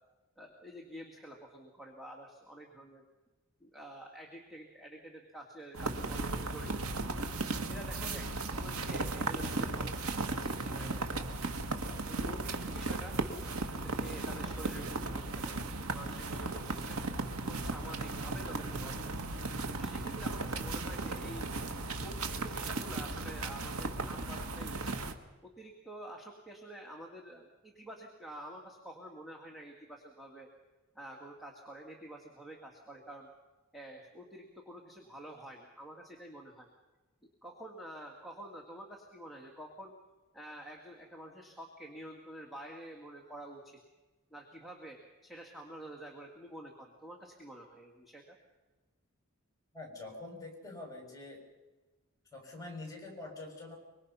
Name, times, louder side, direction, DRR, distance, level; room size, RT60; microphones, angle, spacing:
voice 1, 0.4-3.0 3.6-6.7 7.7-11.1 12.1-13.2 13.7-15.6 15.9-17.1 17.5-19.1 19.7-21.5 22.0-25.0 25.4-30.5 30.9-33.3 33.7-36.7 37.4-39.9 40.3-43.8 44.3-48.4, right 1 dB, ahead, -1 dB, 2.2 m, -48 dB
sound 1, 5.7-25.1, right 3 dB, 90° right, 1.8 m, -36 dB
voice 2, 49.7-51.4 52.3-53.8, left 2 dB, 15° left, 1 dB, 6.5 m, -45 dB
25.0 x 23.5 x 5.7 m, 1.2 s
head